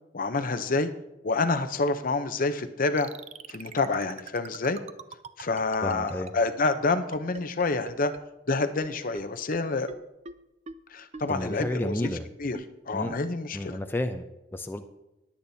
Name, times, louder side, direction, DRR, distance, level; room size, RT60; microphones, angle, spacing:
voice 1, 0.1-0.9 1.2-3.1 3.5-4.8 5.4-8.1 8.5-9.9 10.9-12.1 12.4-12.6 12.9-13.8, left 3 dB, 50° left, 10 dB, 0.7 m, -27 dB
sound 1, 3.0-8.2 8.5-8.6 8.8-8.9 9.1-9.2 9.5-9.6 9.9-10.0 10.3-10.4 10.7-10.8 11.1-11.2 11.6-11.7 12.0-12.1 12.5-12.6 13.1-13.2, right 4 dB, 35° right, 0.5 m, -40 dB
voice 2, 5.8-6.3 11.3-12.3 12.9-13.2 13.5-14.8, left 1 dB, 10° left, 6 dB, 0.5 m, -31 dB
20.5 x 8.6 x 2.8 m, 0.94 s
head